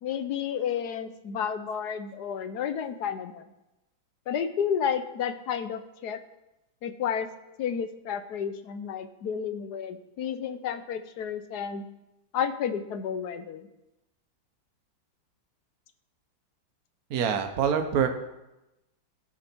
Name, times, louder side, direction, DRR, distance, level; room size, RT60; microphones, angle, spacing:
voice 1, 0.0-3.4 4.3-6.2 6.8-7.3 7.6-11.8 12.3-13.7, left 8 dB, 65° left, 10 dB, 1.2 m, -31 dB
voice 2, 17.1-18.1, right 7 dB, 55° right, 6 dB, 1.4 m, -25 dB
17.5 x 7.0 x 4.6 m, 0.95 s
omnidirectional pair, 2.1 m